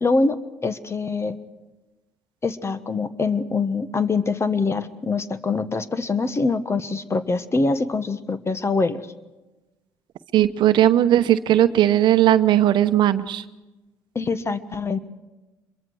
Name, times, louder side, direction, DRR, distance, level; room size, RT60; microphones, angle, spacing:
voice 1, 0.0-0.4 0.6-1.4 2.4-9.1 14.1-15.0, left 3 dB, 30° left, 12 dB, 1.3 m, -24 dB
voice 2, 10.3-13.4, right 12 dB, 65° right, 11 dB, 0.9 m, -17 dB
25.5 x 22.5 x 4.8 m, 1.1 s
hypercardioid pair, 60°, 8 cm